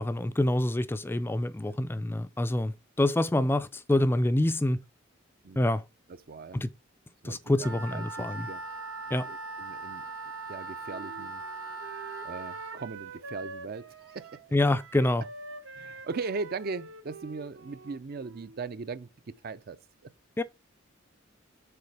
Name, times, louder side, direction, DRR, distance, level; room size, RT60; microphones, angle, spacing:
voice 1, 0.0-4.8 5.6-5.8 6.5-6.7 7.2-8.5 9.1-9.3 14.5-15.2 20.4-20.5, left 1 dB, 10° left, 0.4 m, -26 dB
voice 2, 6.1-6.6 7.2-8.6 9.1-10.1 10.5-11.4 12.2-14.4 15.8-20.1, right 4 dB, 50° right, 0.5 m, -39 dB
Wind instrument woodwind instrument, 7.6-12.8, right 3 dB, 90° right, 1.5 m, -39 dB
Wind instrument woodwind instrument 2, 10.8-18.6, right 2 dB, 65° right, 0.9 m, -46 dB
6.9 x 4.1 x 4.7 m
head